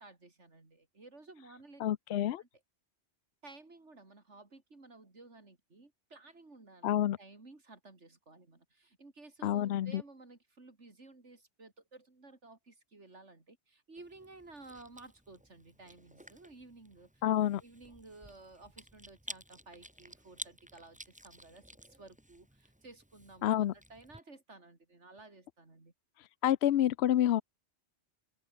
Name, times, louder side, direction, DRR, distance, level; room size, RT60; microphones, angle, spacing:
voice 1, 0.0-1.8 2.4-2.5 3.4-17.1 17.6-25.9, right 3 dB, 85° right, 4.0 m, -55 dB
voice 2, 1.8-2.4 6.8-7.2 9.4-10.0 17.2-17.6 23.4-23.7 26.4-27.4, left 12 dB, 75° left, 0.9 m, -28 dB
Chewing mastication, 14.0-24.2, equal, 5° right, 2.3 m, -53 dB
open air
omnidirectional pair, 1.2 m